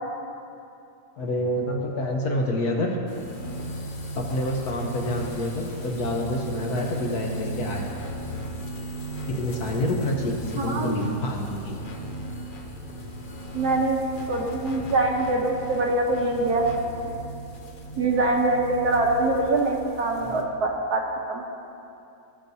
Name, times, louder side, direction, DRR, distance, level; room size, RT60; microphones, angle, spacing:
voice 1, 1.2-3.0 4.1-7.9 9.3-11.8, left 1 dB, 60° left, 0 dB, 1.2 m, -27 dB
sound 1, 3.1-20.4, right 1 dB, 80° left, 0.4 m, -36 dB
voice 2, 10.6-11.0 13.5-16.6 18.0-21.0 21.3-21.4, right 2 dB, 60° right, 0 dB, 1.2 m, -24 dB
18.0 x 6.6 x 2.7 m, 2.7 s
omnidirectional pair, 2.1 m